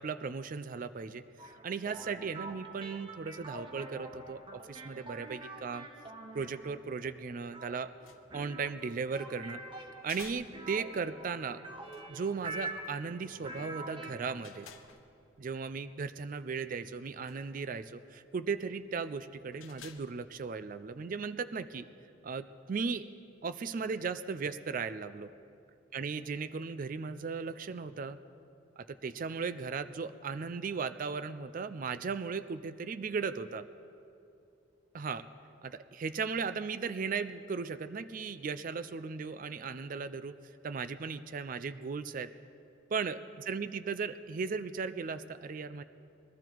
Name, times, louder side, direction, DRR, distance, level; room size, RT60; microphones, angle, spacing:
voice 1, 0.0-5.9 6.3-7.9 8.3-9.6 10.0-11.6 12.1-14.7 15.4-21.8 22.2-23.1 23.4-25.3 25.9-28.2 28.8-33.7 34.9-35.2 35.6-40.3 40.6-42.3 42.9-45.8, right 5 dB, 45° right, 12 dB, 0.4 m, -37 dB
sound 1, 1.4-14.9, right 2 dB, 25° right, 1.1 m, -46 dB
sound 2, 7.8-21.3, left 7 dB, 90° left, 0.9 m, -58 dB
22.0 x 13.0 x 4.6 m, 2.7 s
head